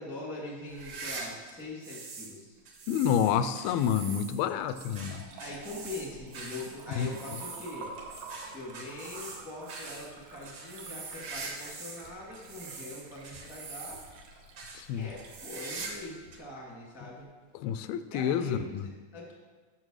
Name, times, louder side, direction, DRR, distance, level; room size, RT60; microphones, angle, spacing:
voice 1, 0.0-2.6 5.4-7.9 8.5-14.0 15.0-17.2 18.1-19.3, left 2 dB, ahead, -3 dB, 0.6 m, -42 dB
sound 1, 0.7-2.4 2.7-12.0 12.3-14.2 14.6-14.8 15.2-16.1 16.3-16.4 17.2-17.3 18.5-18.6, right 4 dB, 55° right, 1.6 m, -43 dB
voice 2, 2.9-5.2 7.0-7.1 14.8-15.1 17.5-18.9, left 9 dB, 85° left, 11 dB, 2.4 m, -29 dB
Liquid, 4.3-16.4, right 3 dB, 90° right, 3.2 m, -49 dB
8.9 x 6.6 x 6.3 m, 1.4 s
omnidirectional pair, 4.3 m